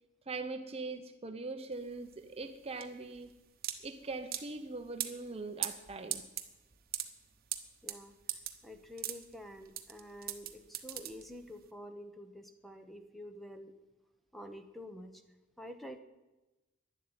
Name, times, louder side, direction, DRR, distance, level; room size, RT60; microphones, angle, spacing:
voice 1, 0.3-3.3 3.8-6.2, right 3 dB, 30° right, 7 dB, 0.7 m, -41 dB
sound 1, 1.7-11.6, right 12 dB, 45° right, 1.1 m, -41 dB
voice 2, 7.8-8.1 8.6-13.7 14.3-15.2 15.6-16.0, equal, ahead, 7 dB, 0.9 m, -48 dB
12.0 x 11.0 x 8.8 m, 1.1 s
head